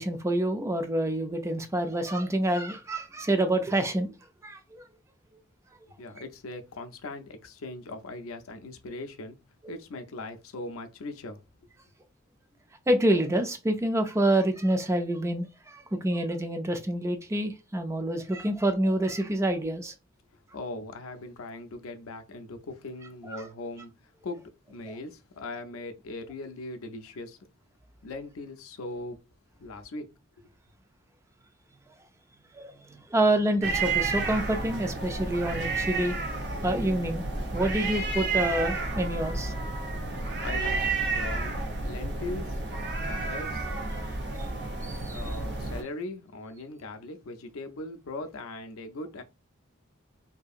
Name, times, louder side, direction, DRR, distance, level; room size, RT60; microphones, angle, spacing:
voice 1, 0.0-4.1 4.4-4.8 12.9-19.9 23.3-23.5 32.5-36.2 36.6-37.3 37.5-39.5 44.8-45.4, right 1 dB, 15° right, 0.4 m, -27 dB
voice 2, 6.0-9.4 9.7-11.4 20.5-27.4 28.0-29.2 29.6-30.1 40.2-42.6 43.1-43.7 45.1-49.2, left 2 dB, 70° left, 0.5 m, -40 dB
sound 1, 33.6-45.8, right 3 dB, 55° right, 0.8 m, -31 dB
2.7 x 2.7 x 2.4 m
head